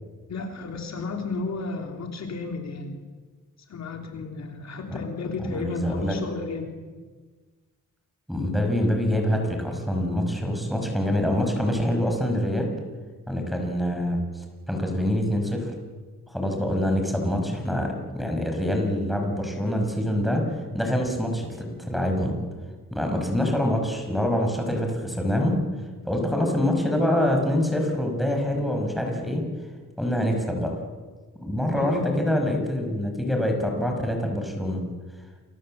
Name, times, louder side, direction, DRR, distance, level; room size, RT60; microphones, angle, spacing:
voice 1, 0.3-3.0 3.7-6.7 31.7-32.3, left 3 dB, 55° left, 3 dB, 3.4 m, -33 dB
voice 2, 5.4-6.2 8.3-12.7 13.3-15.7 16.3-20.4 20.7-22.4 22.9-25.6 26.1-29.4 30.0-30.7 31.4-34.8, left 1 dB, ahead, 2 dB, 5.8 m, -25 dB
29.0 x 24.5 x 7.7 m, 1.4 s
wide cardioid pair, 145°, 33 cm